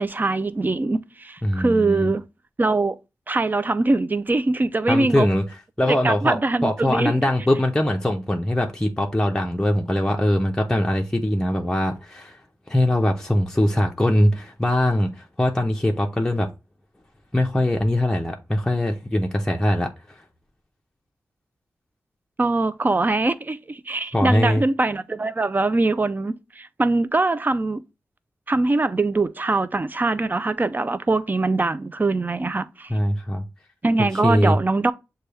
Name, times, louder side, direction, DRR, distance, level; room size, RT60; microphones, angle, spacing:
voice 1, 0.0-2.2 2.6-3.0 3.3-5.3 5.9-7.1 22.4-27.8 28.5-32.9 33.8-34.9, right 2 dB, 30° right, 0.4 m, -22 dB
voice 2, 1.4-2.1 4.9-5.4 5.8-12.4 12.7-16.5 17.3-19.9 24.1-24.6 32.9-33.4 34.2-34.6, left 1 dB, 10° left, 0.6 m, -22 dB
6.7 x 2.3 x 3.2 m
cardioid pair, 55°, 6 cm